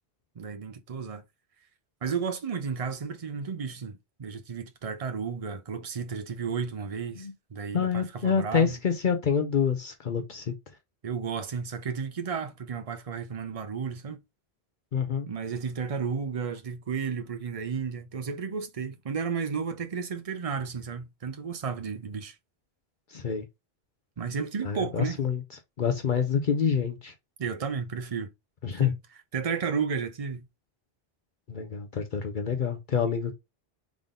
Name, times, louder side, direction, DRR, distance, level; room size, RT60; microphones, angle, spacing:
voice 1, 0.4-1.2 2.0-8.8 11.0-14.2 15.3-22.3 24.2-25.2 27.4-28.3 28.7-29.0 29.3-30.4, right 6 dB, 40° right, 0.7 m, -33 dB
voice 2, 7.7-10.5 14.9-15.3 23.1-23.4 24.6-25.4 25.8-27.1 28.6-28.9 31.5-33.3, left 6 dB, 55° left, 0.8 m, -27 dB
3.8 x 3.6 x 3.7 m
omnidirectional pair, 1.0 m